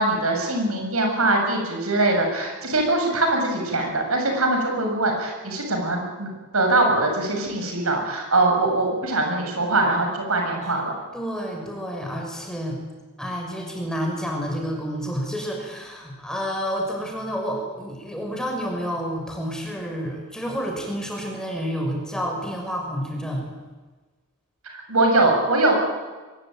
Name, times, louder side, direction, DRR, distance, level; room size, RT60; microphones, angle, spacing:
voice 1, 0.0-10.9 24.6-25.8, right 2 dB, 85° right, 3 dB, 7.2 m, -22 dB
voice 2, 11.1-12.8 13.2-23.4, equal, 5° left, 0 dB, 6.2 m, -29 dB
23.0 x 22.0 x 9.2 m, 1.3 s
head